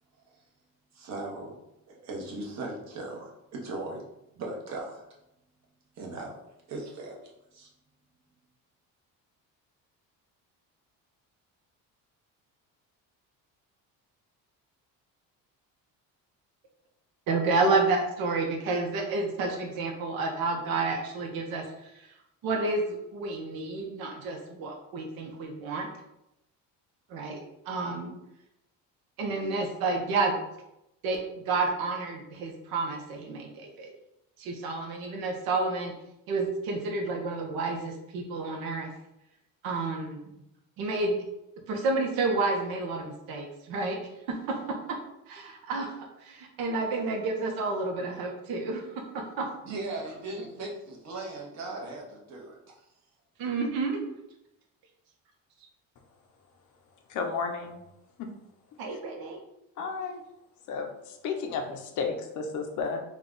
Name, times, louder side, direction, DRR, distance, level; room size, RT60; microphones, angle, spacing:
voice 1, 0.9-1.6 1.9-4.0 4.3-5.0 6.0-6.4 6.7-7.7 49.6-52.6 53.4-53.5, right 2 dB, 50° right, -1 dB, 1.1 m, -38 dB
voice 2, 17.3-22.1 22.4-22.8 23.1-25.9 27.1-28.1 29.2-30.4 31.0-31.2 31.5-33.9 34.4-35.9 36.3-38.9 39.6-40.2 40.8-41.1 41.7-44.0 44.3-44.8 45.3-46.0 46.2-49.5 53.4-54.1 58.8-59.4, right 3 dB, 75° right, 2 dB, 1.0 m, -30 dB
voice 3, 57.1-57.8 58.2-58.3 58.9-59.0 59.8-60.2 60.7-63.0, left 5 dB, 55° left, 5 dB, 0.6 m, -33 dB
3.8 x 2.4 x 3.7 m, 0.85 s
cardioid pair, 150°, 36 cm